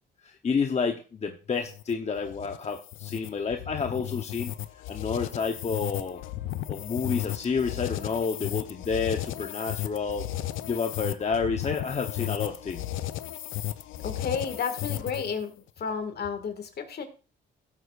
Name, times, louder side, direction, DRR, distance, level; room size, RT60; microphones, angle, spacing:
voice 1, 0.2-4.5 4.9-6.2 6.7-10.3 10.6-12.8, left 5 dB, 35° left, 5 dB, 0.9 m, -30 dB
sound 1, 1.6-15.4, left 14 dB, 85° left, 0.6 m, -35 dB
voice 2, 14.0-17.0, left 6 dB, 55° left, 7 dB, 1.9 m, -32 dB
15.5 x 8.1 x 2.5 m, 0.35 s
cardioid pair, 90°, 20 cm